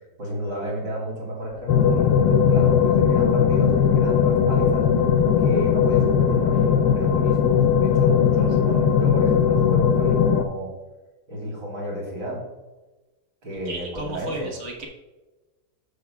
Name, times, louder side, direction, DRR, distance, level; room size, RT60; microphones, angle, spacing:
voice 1, 0.2-4.9 5.4-10.7 11.3-12.4 13.4-14.5, equal, 80° right, -3 dB, 3.6 m, -32 dB
sound 1, 1.7-10.5, left 7 dB, 70° left, 1.1 m, -19 dB
voice 2, 13.6-14.9, right 1 dB, 45° right, 1 dB, 1.5 m, -33 dB
14.0 x 6.3 x 2.3 m, 1.1 s
omnidirectional pair, 1.9 m